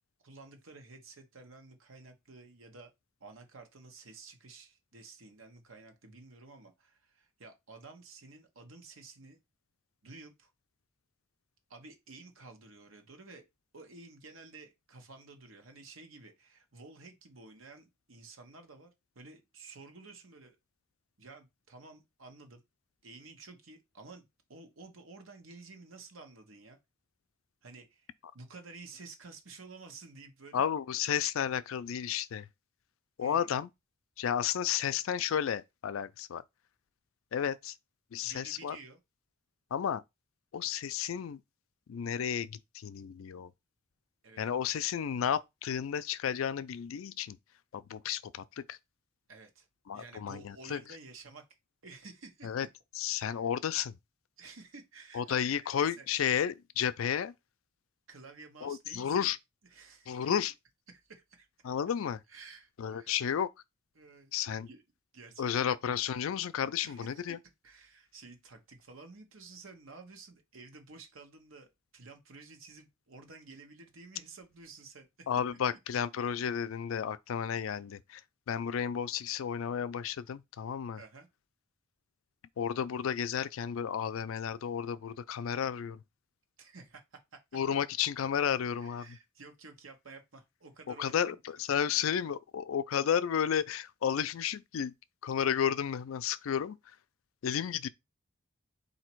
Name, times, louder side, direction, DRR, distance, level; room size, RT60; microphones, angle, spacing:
voice 1, 0.2-2.9 3.2-9.4 10.0-10.5 11.7-13.4 13.7-20.6 21.2-22.6 23.0-26.8 27.6-30.7 33.2-33.5 38.2-39.0 44.2-44.6 49.3-49.7 49.9-51.4 51.8-52.7 53.1-53.5 54.4-56.1 58.1-59.3 59.7-60.4 60.9-61.5 62.3-63.2 63.9-64.8 65.1-65.8 66.8-67.4 67.6-75.3 80.9-81.3 86.6-87.4 88.7-91.4, right 3 dB, 85° right, 1.1 m, -52 dB
voice 2, 30.5-32.5 33.2-33.7 34.2-36.4 37.3-37.7 38.1-38.8 39.7-40.0 40.5-41.4 41.9-43.5 44.4-47.4 47.7-48.8 49.9-50.8 52.4-52.7 53.0-53.9 55.1-57.3 58.6-59.4 60.1-60.5 61.6-62.2 62.8-63.5 64.3-64.7 65.4-67.4 75.3-78.2 78.5-81.0 82.6-86.0 87.5-89.1 91.0-94.9 95.2-96.8 97.4-97.9, left 8 dB, 85° left, 0.4 m, -32 dB
4.1 x 2.7 x 4.5 m
head